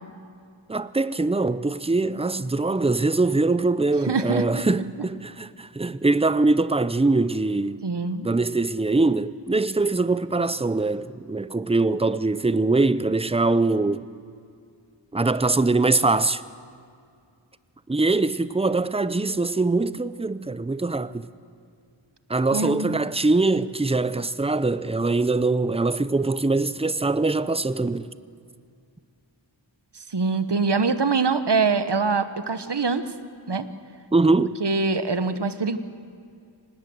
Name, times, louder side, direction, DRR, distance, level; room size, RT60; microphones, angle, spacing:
voice 1, 0.7-7.8 8.2-14.1 15.1-16.4 17.9-21.3 22.3-28.1 34.1-34.6, right 3 dB, 15° right, 0.6 m, -23 dB
voice 2, 4.1-5.1 7.8-8.3 22.5-23.0 30.1-33.0 33.5-33.6 34.6-35.8, right 4 dB, 60° right, 1.1 m, -24 dB
25.5 x 19.5 x 7.8 m
wide cardioid pair, 40°, 46 cm